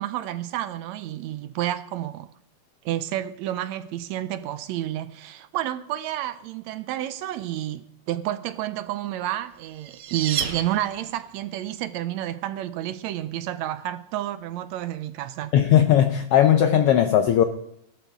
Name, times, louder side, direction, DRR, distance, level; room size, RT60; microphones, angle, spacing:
voice 1, 0.0-2.3 2.9-15.5, right 13 dB, 75° right, 1.8 m, -30 dB
sound 1, 9.3-11.4, right 8 dB, 60° right, 1.7 m, -33 dB
voice 2, 15.5-17.4, left 10 dB, 80° left, 1.3 m, -18 dB
17.5 x 13.0 x 3.6 m
omnidirectional pair, 3.4 m